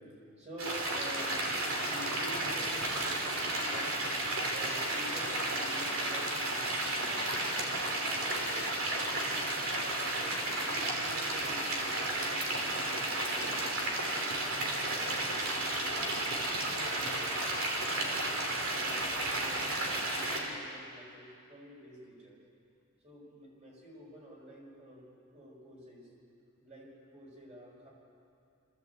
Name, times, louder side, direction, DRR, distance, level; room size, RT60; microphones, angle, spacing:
voice 1, 0.3-1.4 1.7-4.0 4.5-8.1 10.1-13.8 14.1-14.4 14.9-17.5 17.9-22.4 23.0-25.1 25.3-26.1 26.6-27.9, equal, 30° right, -3 dB, 5.5 m, -50 dB
sound 1, 0.6-20.4, right 1 dB, 65° right, 3.3 m, -33 dB
24.5 x 14.5 x 8.3 m, 2.6 s
head